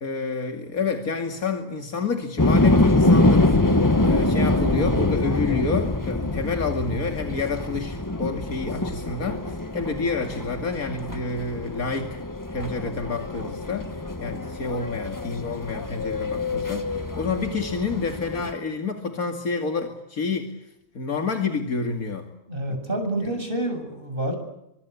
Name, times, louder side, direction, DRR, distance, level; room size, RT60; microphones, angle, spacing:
voice 1, 0.0-3.6 4.0-12.2 12.5-20.5 20.9-22.3 22.7-22.8 23.2-23.3, left 4 dB, 85° left, 4 dB, 2.9 m, -29 dB
sound 1, 2.4-18.5, left 2 dB, 15° left, 1.3 m, -24 dB
voice 2, 22.5-24.4, right 1 dB, 40° right, 5 dB, 7.8 m, -28 dB
27.5 x 25.0 x 8.5 m, 0.86 s
omnidirectional pair, 1.5 m